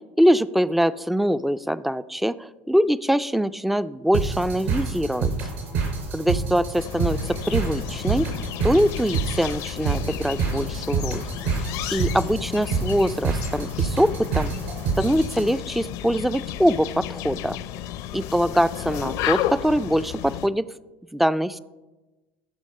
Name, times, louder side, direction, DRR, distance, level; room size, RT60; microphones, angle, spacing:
voice 1, 0.2-5.3 6.1-8.3 8.6-11.2 11.9-14.5 15.0-17.6 18.1-20.7 21.1-21.6, equal, ahead, 15 dB, 0.4 m, -23 dB
sound 1, 4.1-15.5, right 5 dB, 75° right, 4.5 m, -28 dB
sound 2, 6.8-20.5, left 12 dB, 60° left, 0.6 m, -33 dB
13.0 x 7.0 x 5.3 m, 1.2 s
hypercardioid pair, 90°, 7 cm